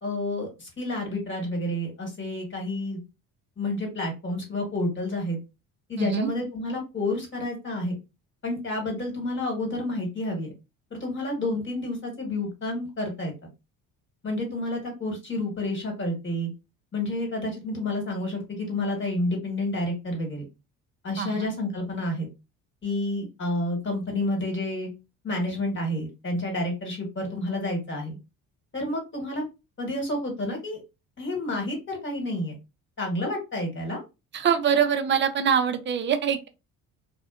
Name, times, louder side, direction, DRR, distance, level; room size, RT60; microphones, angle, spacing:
voice 1, 0.0-3.0 3.6-5.4 5.9-8.0 8.4-10.5 10.9-13.3 14.2-16.5 16.9-20.4 21.0-22.3 22.8-24.9 25.2-28.2 28.7-29.4 29.8-30.8 31.2-32.5 33.0-34.0, left 1 dB, 30° left, 1.3 m, -29 dB
voice 2, 6.0-6.3 21.2-21.5 34.3-36.5, right 7 dB, 30° right, 0.4 m, -24 dB
2.5 x 2.1 x 2.4 m
supercardioid pair, 85°, 37 cm